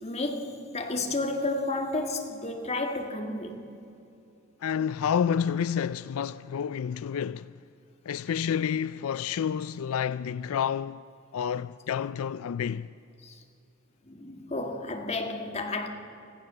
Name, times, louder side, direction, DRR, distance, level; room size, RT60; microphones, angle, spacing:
voice 1, 0.0-3.7 13.2-13.3 14.1-15.9, left 2 dB, 30° left, 1.8 m, -32 dB
voice 2, 4.6-7.5 8.1-11.0 11.3-12.9, left 8 dB, 80° left, 0.4 m, -29 dB
25.5 x 15.5 x 6.8 m
head